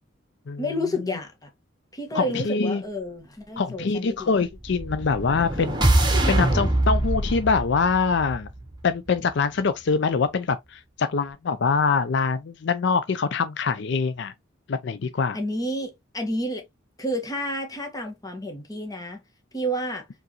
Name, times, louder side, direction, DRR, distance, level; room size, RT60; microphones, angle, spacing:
voice 1, 0.6-1.5 1.9-4.4 15.3-16.6 17.0-19.2 19.5-20.1, equal, 20° left, 1.4 m, -30 dB
voice 2, 2.1-2.8 3.6-5.8 6.3-8.5 8.8-14.3 14.7-15.4, left 5 dB, 65° left, 0.5 m, -24 dB
sound 1, 4.6-8.9, right 1 dB, 25° right, 1.8 m, -23 dB
4.6 x 3.9 x 2.9 m
head